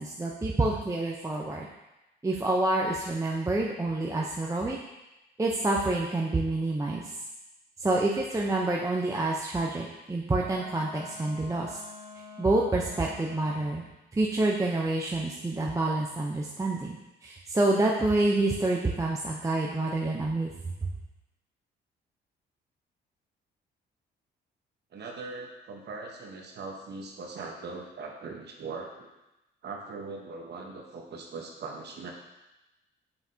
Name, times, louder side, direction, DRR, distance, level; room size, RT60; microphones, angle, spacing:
voice 1, 0.0-1.7 2.2-4.8 5.4-7.0 7.8-11.8 12.4-13.8 14.1-17.0 17.2-20.5, right 2 dB, 15° right, -2 dB, 0.7 m, -27 dB
Wind instrument woodwind instrument, 10.3-13.9, left 3 dB, 55° left, 1.7 m, -47 dB
voice 2, 24.9-29.1 29.6-32.1, right 4 dB, 60° right, 1 dB, 1.0 m, -40 dB
7.1 x 5.7 x 2.8 m, 0.97 s
cardioid pair, 90°, 20 cm